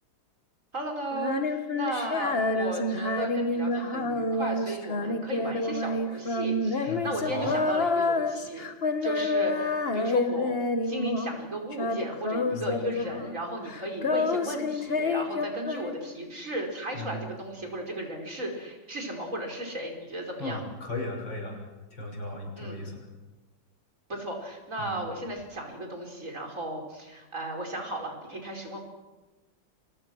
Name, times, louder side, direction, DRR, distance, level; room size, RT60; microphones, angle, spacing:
voice 1, 0.7-8.7 9.0-10.6 10.8-20.6 22.6-22.8 24.1-28.8, right 1 dB, 40° right, 1 dB, 5.6 m, -35 dB
Female singing, 1.1-11.4 11.7-13.4 13.7-16.3, left 2 dB, 35° left, 1.4 m, -29 dB
voice 2, 6.9-7.6 12.5-12.8 16.9-17.2 20.4-21.6 21.9-23.1 24.8-24.9, left 1 dB, 75° left, 1 dB, 7.3 m, -36 dB
29.5 x 25.0 x 6.3 m, 1.2 s
omnidirectional pair, 2.0 m